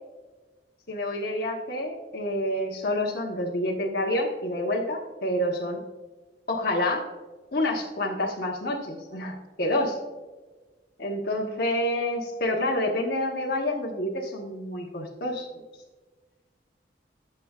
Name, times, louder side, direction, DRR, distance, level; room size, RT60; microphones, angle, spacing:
voice 1, 0.9-5.8 6.5-7.1 7.5-10.0 11.0-15.5, left 1 dB, 55° left, -3 dB, 1.1 m, -28 dB
13.0 x 6.8 x 2.4 m, 1.3 s
head